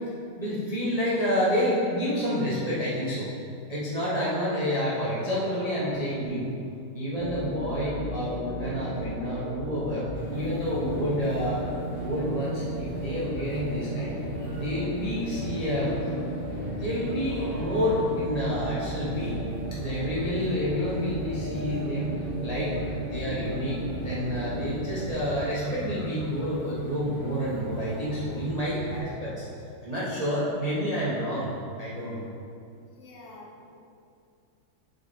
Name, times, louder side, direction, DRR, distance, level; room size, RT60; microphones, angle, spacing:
voice 1, 0.4-3.3 3.7-6.5 6.9-11.6 12.0-14.2 14.6-16.0 16.6-19.3 19.8-22.8 23.1-23.8 24.0-29.4 29.8-31.5 31.8-32.2, equal, 80° right, -8 dB, 0.3 m, -29 dB
sound 1, 7.1-25.1, right 1 dB, 40° right, 1.5 m, -35 dB
sound 2, 10.1-29.0, equal, 20° left, 0.8 m, -40 dB
voice 2, 32.9-33.8, left 2 dB, 55° left, -2 dB, 0.7 m, -49 dB
7.0 x 4.0 x 4.0 m, 2.4 s
omnidirectional pair, 2.4 m